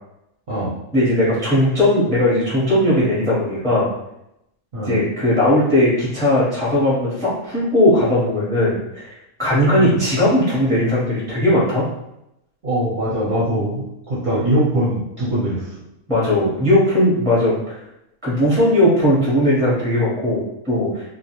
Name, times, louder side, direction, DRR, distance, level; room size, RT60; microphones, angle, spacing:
voice 1, 0.9-3.9 4.8-9.1 9.4-11.9 16.1-17.5 18.2-21.0, left 1 dB, 5° left, -7 dB, 0.6 m, -18 dB
voice 2, 12.6-13.8 14.1-15.6, right 1 dB, 45° right, -10 dB, 0.7 m, -21 dB
2.3 x 2.1 x 2.9 m, 0.85 s
omnidirectional pair, 1.5 m